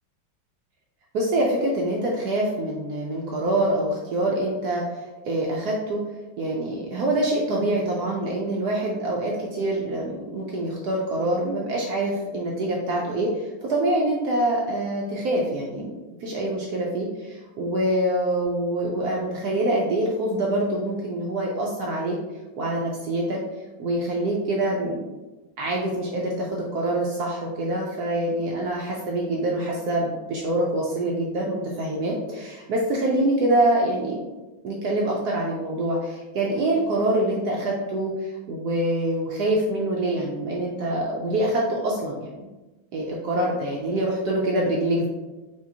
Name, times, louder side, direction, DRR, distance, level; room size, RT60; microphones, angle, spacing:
voice 1, 1.1-6.0 6.4-15.9 16.2-22.2 22.6-23.4 23.8-25.0 25.6-34.2 34.6-42.5 42.9-45.1, right 1 dB, 80° right, -3 dB, 0.8 m, -25 dB
4.9 x 2.9 x 2.7 m, 1.1 s
omnidirectional pair, 2.3 m